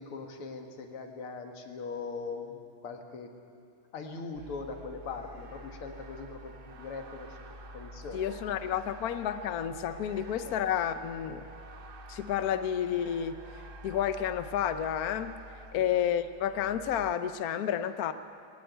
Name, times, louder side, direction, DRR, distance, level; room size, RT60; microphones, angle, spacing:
voice 1, 0.0-3.3 3.9-8.6 10.4-10.5 15.7-15.9, left 4 dB, 80° left, 4 dB, 2.6 m, -41 dB
sound 1, 4.3-17.1, right 1 dB, 45° right, 0.7 m, -48 dB
voice 2, 8.1-11.5 12.1-13.4 13.8-15.4 15.7-18.1, left 9 dB, 60° left, 10 dB, 1.0 m, -30 dB
20.0 x 18.5 x 9.2 m, 2.4 s
omnidirectional pair, 2.4 m